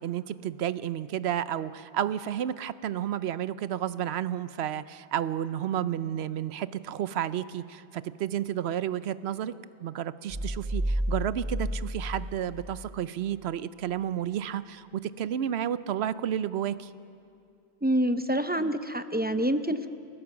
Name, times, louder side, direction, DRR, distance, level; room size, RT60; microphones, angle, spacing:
voice 1, 0.0-9.5 9.8-16.9, right 10 dB, 75° right, 15 dB, 0.9 m, -31 dB
sound 1, 10.3-13.1, equal, 35° right, 1.7 m, -31 dB
voice 2, 17.8-19.9, right 1 dB, 15° right, 10 dB, 0.4 m, -27 dB
30.0 x 14.0 x 7.1 m, 2.4 s
omnidirectional pair, 1.1 m